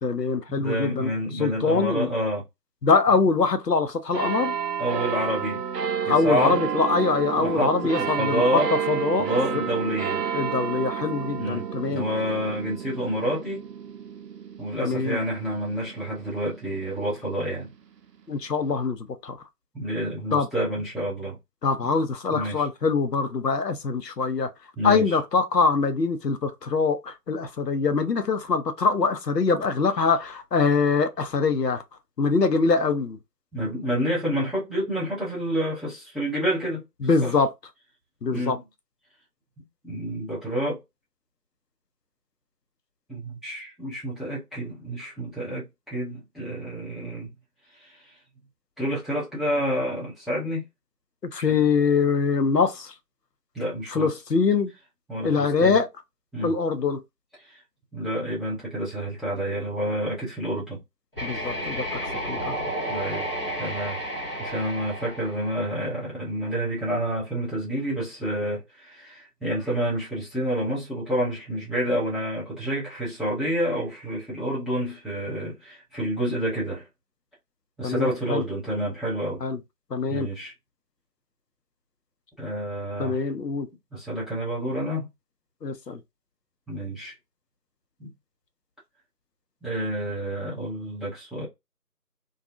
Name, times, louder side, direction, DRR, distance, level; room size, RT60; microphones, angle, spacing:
voice 1, 0.0-2.1 2.8-4.5 6.1-9.3 9.5-9.6 10.3-12.0 14.8-15.2 18.3-19.0 19.2-19.4 20.3-20.5 21.6-24.5 24.8-31.8 32.2-33.2 37.0-37.5 38.2-38.6 51.3-52.9 53.9-54.7 55.2-55.9 56.4-57.0 61.2-61.8 62.3-62.5 77.8-78.4 79.4-79.6 79.9-80.3 83.0-83.7 85.6-86.0, left 4 dB, 85° left, 0.7 m, -23 dB
voice 2, 0.6-2.4 4.8-5.6 6.1-6.6 7.3-8.7 9.2-10.2 11.3-13.7 14.6-17.7 19.7-21.4 21.8-21.9 22.3-22.7 24.8-25.2 33.5-37.3 38.3-38.6 39.8-40.8 43.1-47.3 47.8-48.1 48.8-50.6 51.4-51.6 53.5-54.1 55.1-55.8 56.3-56.5 57.4-57.6 57.9-60.8 62.9-63.3 63.6-64.0 64.4-76.8 77.8-79.4 80.1-80.5 82.4-83.2 83.9-85.1 86.7-87.1 88.0-88.1 89.6-91.5, equal, ahead, 0.8 m, -29 dB
sound 1, 4.1-17.0 17.7-17.8, right 7 dB, 80° right, 0.6 m, -30 dB
sound 2, 61.1-66.1, equal, 35° left, 1.2 m, -32 dB
2.6 x 2.4 x 2.5 m
figure-of-eight pair, 180°, 48 cm